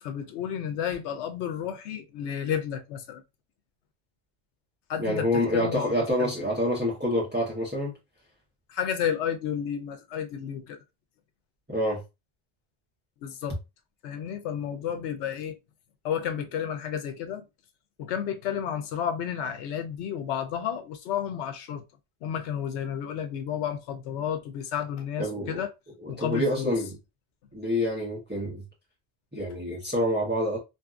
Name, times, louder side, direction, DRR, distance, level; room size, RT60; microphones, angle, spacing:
voice 1, 0.0-3.2 4.9-6.3 8.7-10.8 13.2-13.6 14.0-15.6 16.0-17.4 18.0-21.8 22.2-25.7 26.1-26.8, left 8 dB, 85° left, 0.9 m, -31 dB
voice 2, 5.0-7.9 11.7-12.0 25.2-25.6 26.0-26.9 27.5-28.6 29.3-30.6, equal, 10° right, 0.8 m, -27 dB
2.7 x 2.5 x 2.3 m
omnidirectional pair, 1.1 m